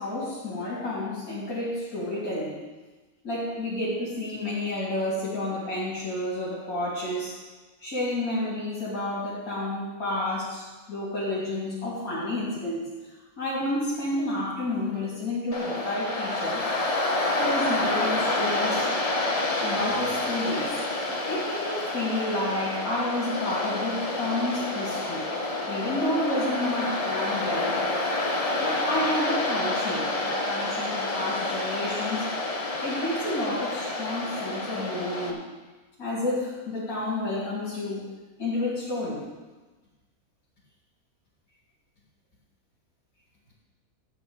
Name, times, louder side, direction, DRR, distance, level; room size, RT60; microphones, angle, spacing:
voice 1, 0.0-2.6 3.2-7.4 7.8-16.7 17.4-18.9 19.6-20.8 21.3-25.3 25.7-27.9 28.6-32.3 32.8-35.4 36.0-38.1 38.4-39.3, left 1 dB, 70° left, -8 dB, 3.3 m, -30 dB
sound 1, 14.9-15.2 15.7-15.9 16.5-16.7 17.2-17.5 18.0-18.3 18.8-19.1 19.6-19.8 20.4-20.6 21.2-21.4 21.9-22.2 22.7-22.9 23.5-23.7 24.3-24.5 25.0-25.3 25.8-26.1 26.6-26.8, right 3 dB, 60° right, 1.6 m, -47 dB
Waves surf, 15.5-35.3, left 2 dB, 25° left, 1.1 m, -28 dB
13.5 x 4.9 x 8.9 m, 1.2 s
omnidirectional pair, 1.6 m